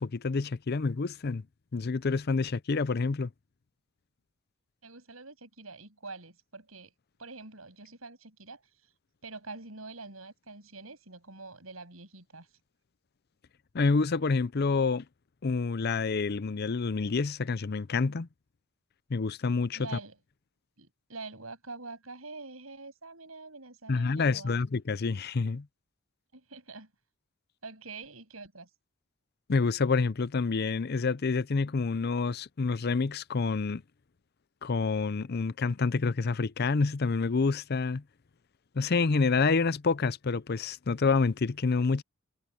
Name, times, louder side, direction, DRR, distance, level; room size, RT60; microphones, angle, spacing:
voice 1, 0.0-1.4 1.7-3.3 13.7-15.0 15.4-18.3 19.1-20.0 23.9-25.7 29.5-33.8 34.6-38.0 38.7-42.0, left 4 dB, 50° left, 0.6 m, -28 dB
voice 2, 4.8-6.9 7.2-8.6 9.2-12.5 19.8-20.2 20.8-24.6 26.3-26.9 27.6-28.7, right 3 dB, 90° right, 7.7 m, -45 dB
head